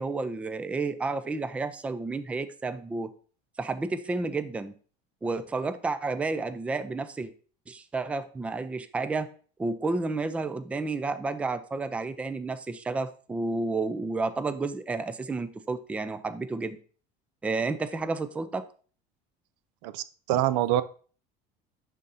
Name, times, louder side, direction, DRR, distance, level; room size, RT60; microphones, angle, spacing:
voice 1, 0.0-3.1 3.6-4.7 5.2-7.3 7.7-9.3 9.6-16.8 17.4-18.6, right 3 dB, 5° right, 11 dB, 0.3 m, -31 dB
voice 2, 19.8-20.8, right 13 dB, 90° right, 14 dB, 0.5 m, -25 dB
10.5 x 3.8 x 2.7 m, 0.42 s
cardioid pair, 145°, 20 cm